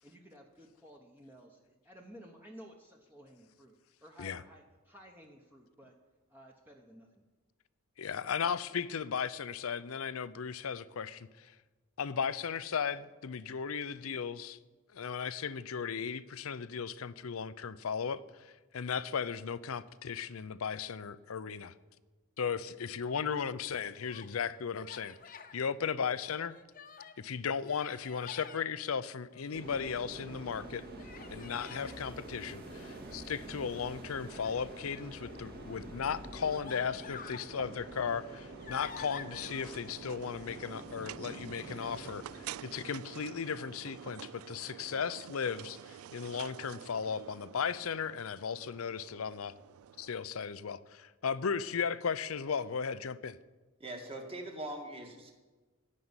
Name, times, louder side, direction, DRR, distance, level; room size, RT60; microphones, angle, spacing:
voice 1, 0.0-5.9 6.3-7.2, equal, 10° right, 1 dB, 1.0 m, -55 dB
voice 2, 8.0-11.5 12.0-14.6 14.9-21.7 22.4-26.5 27.2-30.9 31.3-49.5 50.0-53.4, left 6 dB, 85° left, 16 dB, 0.6 m, -36 dB
Human voice, 23.7-24.3 24.7-25.6 26.1-27.2 27.6-28.6 29.3-30.1 31.0-32.0 34.2-35.2 35.9-36.0 36.4-37.5 38.0-39.5, left 6 dB, 40° left, 0.9 m, -49 dB
sound 1, 29.5-42.8, right 1 dB, 50° right, 2.4 m, -47 dB
sound 2, 37.5-50.2, right 10 dB, 90° right, 0.3 m, -49 dB
voice 3, 53.8-55.3, right 1 dB, 30° right, 2 dB, 2.0 m, -42 dB
15.0 x 5.4 x 9.6 m, 1.3 s
head